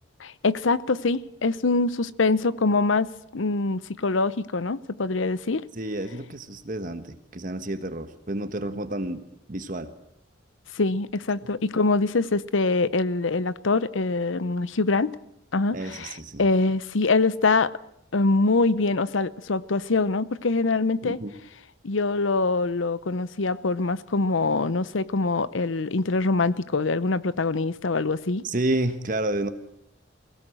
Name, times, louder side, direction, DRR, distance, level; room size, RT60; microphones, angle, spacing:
voice 1, 0.2-5.6 10.7-15.2 15.5-16.1 16.4-17.7 18.1-21.2 21.8-28.4, left 3 dB, 85° left, 17 dB, 0.8 m, -24 dB
voice 2, 5.7-9.2 9.5-9.9 15.7-16.4 21.0-21.3 28.4-29.5, right 1 dB, 45° right, 9 dB, 1.3 m, -30 dB
23.5 x 16.5 x 7.8 m, 0.78 s
head